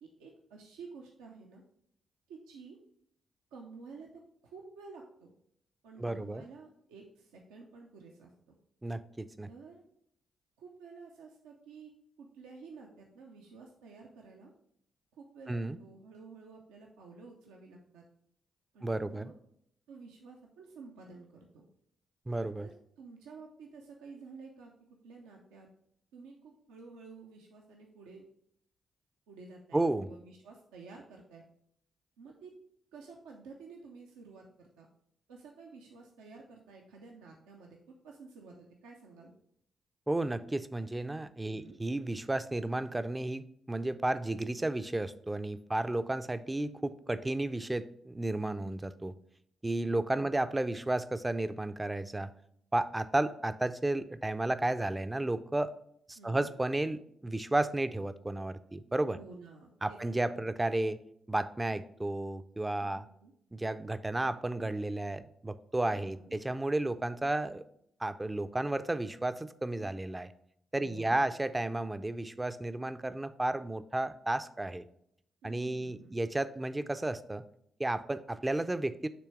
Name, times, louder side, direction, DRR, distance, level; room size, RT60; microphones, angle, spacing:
voice 1, 0.0-1.6 2.3-2.8 3.5-5.3 5.8-8.6 9.5-9.8 10.6-11.9 12.2-14.5 15.2-18.0 18.7-19.3 19.9-21.6 22.6-24.7 25.0-25.7 26.1-28.2 29.3-31.4 32.2-32.5 32.9-34.9 35.3-39.3 41.5-41.8 50.2-50.3 56.2-56.5 59.1-60.5 62.8-63.3 66.0-66.4 70.8-71.3 75.4-76.1, right 4 dB, 80° right, 0 dB, 0.5 m, -51 dB
voice 2, 6.0-6.4 8.8-9.5 15.5-15.8 18.8-19.3 22.3-22.7 29.7-30.1 40.1-49.1 49.6-52.3 52.7-55.7 56.1-59.2 59.8-61.0 61.3-63.1 63.5-67.6 68.0-70.3 70.7-74.8 75.4-77.4 77.8-79.1, right 2 dB, 20° right, 12 dB, 0.4 m, -33 dB
6.1 x 3.3 x 4.6 m, 0.70 s
hypercardioid pair, 40°, 0 cm